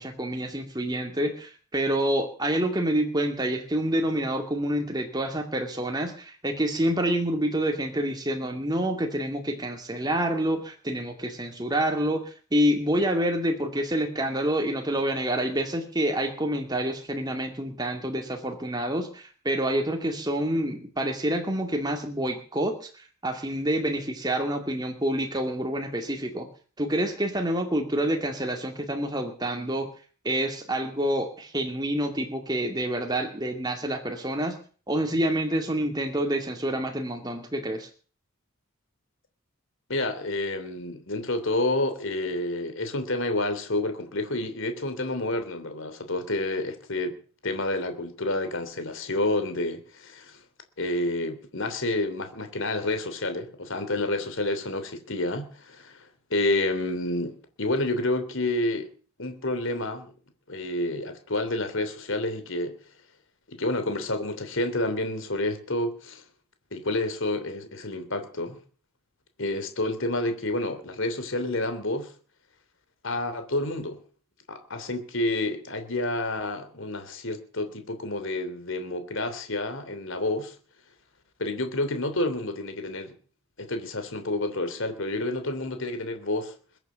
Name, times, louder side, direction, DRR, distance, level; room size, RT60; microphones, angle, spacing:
voice 1, 0.0-26.5 26.8-29.9 30.2-34.6 34.9-37.9, right 1 dB, 20° right, 2.3 m, -27 dB
voice 2, 39.9-47.2 47.4-50.4 50.8-58.9 59.2-60.1 60.5-62.8 63.5-66.2 66.7-68.6 69.4-72.1 73.0-74.0 74.5-80.6 81.4-83.1 83.6-86.5, left 2 dB, 60° left, 3.1 m, -29 dB
22.0 x 9.0 x 6.8 m
head